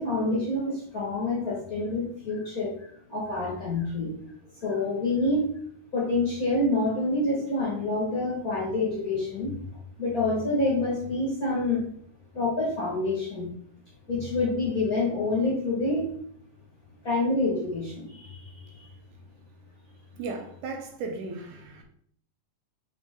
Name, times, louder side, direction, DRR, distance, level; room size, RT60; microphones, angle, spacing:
voice 1, 0.0-2.7 3.1-4.1 4.6-5.5 5.9-9.5 10.0-11.8 12.3-13.5 14.1-16.0 17.0-18.3, left 2 dB, 45° left, 1.2 m, -27 dB
voice 2, 20.2-21.8, right 4 dB, 75° right, 2.2 m, -36 dB
5.4 x 5.2 x 3.6 m
omnidirectional pair, 3.7 m